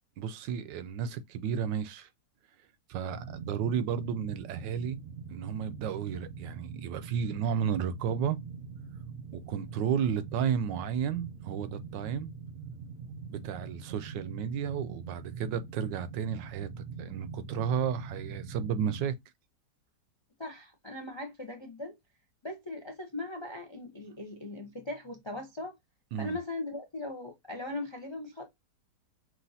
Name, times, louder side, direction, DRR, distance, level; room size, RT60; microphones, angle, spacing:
voice 1, 0.2-2.1 2.9-5.0 5.3-8.4 9.3-12.3 13.3-16.7 17.0-19.1 26.1-26.4, right 8 dB, 85° right, 1.3 m, -32 dB
sound 1, 3.1-19.1, right 5 dB, 65° right, 0.9 m, -43 dB
voice 2, 20.4-21.9 22.4-25.7 26.2-28.5, left 2 dB, 40° left, 0.4 m, -39 dB
6.3 x 2.5 x 2.7 m
omnidirectional pair, 1.9 m